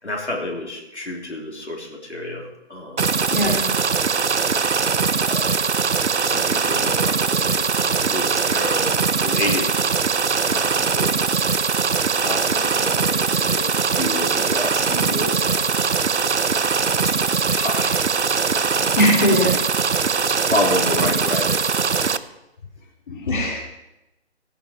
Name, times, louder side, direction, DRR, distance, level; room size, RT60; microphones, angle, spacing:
voice 1, 0.0-3.2 5.3-5.6 6.2-9.7 10.4-11.2 12.2-16.2 17.0-17.1 17.5-18.1 18.7-18.9 20.3-22.2, left 1 dB, 85° left, -1 dB, 3.3 m, -30 dB
sound 1, 3.0-22.2, right 5 dB, 85° right, 0.7 m, -21 dB
voice 2, 3.3-3.7 18.9-19.6 23.1-23.6, left 1 dB, 45° left, -1 dB, 2.8 m, -20 dB
16.5 x 9.0 x 4.4 m, 0.92 s
figure-of-eight pair, 145°, 34 cm